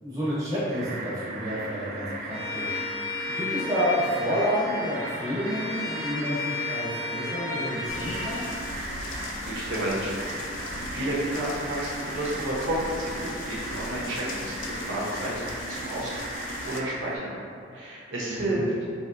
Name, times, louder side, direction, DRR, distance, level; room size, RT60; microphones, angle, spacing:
voice 1, 0.0-2.8 3.3-8.5 18.3-18.6, equal, 20° right, -9 dB, 0.8 m, -29 dB
sound 1, 0.7-17.2, right 2 dB, 50° right, 0.3 m, -37 dB
Bowed string instrument, 2.3-8.6, left 4 dB, 30° left, 0.6 m, -34 dB
sound 2, 7.9-16.8, left 3 dB, 85° left, 0.4 m, -38 dB
voice 2, 8.9-10.2 10.5-17.3 17.7-18.7, right 1 dB, 75° right, -5 dB, 0.7 m, -31 dB
3.2 x 2.8 x 2.5 m, 2.3 s
head